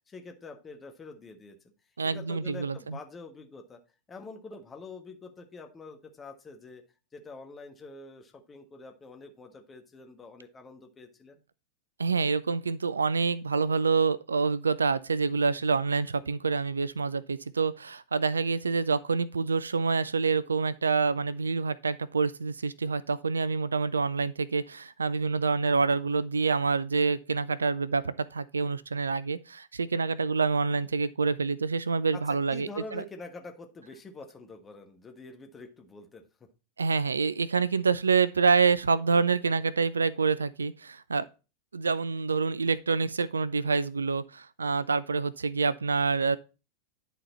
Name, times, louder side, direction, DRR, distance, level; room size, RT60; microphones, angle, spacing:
voice 1, 0.1-1.6 2.0-3.8 4.1-6.8 7.1-11.4 32.1-36.2, left 3 dB, 20° left, 1.2 m, -46 dB
voice 2, 2.0-3.0 12.0-33.0 36.8-41.2 41.7-46.4, right 4 dB, 75° right, 0.3 m, -27 dB
10.0 x 4.1 x 4.2 m
figure-of-eight pair, 90°, 0 cm